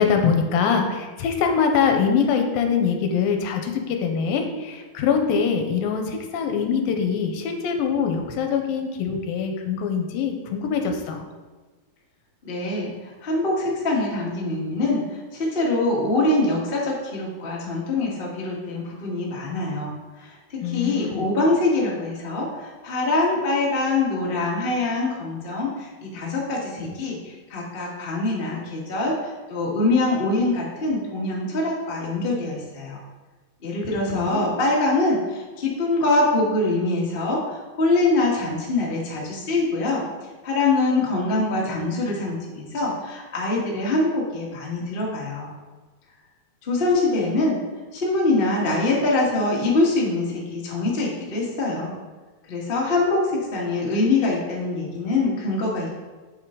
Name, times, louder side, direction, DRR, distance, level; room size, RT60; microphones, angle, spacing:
voice 1, 0.0-11.3 20.6-21.3 34.1-34.5, left 6 dB, 80° left, 4 dB, 2.5 m, -23 dB
voice 2, 12.4-15.0 15.3-19.9 20.2-33.0 33.6-40.0 40.4-45.5 46.6-47.6 47.9-51.9 52.5-55.9, left 2 dB, 40° left, -4 dB, 0.8 m, -24 dB
7.8 x 7.8 x 3.8 m, 1.3 s
omnidirectional pair, 4.2 m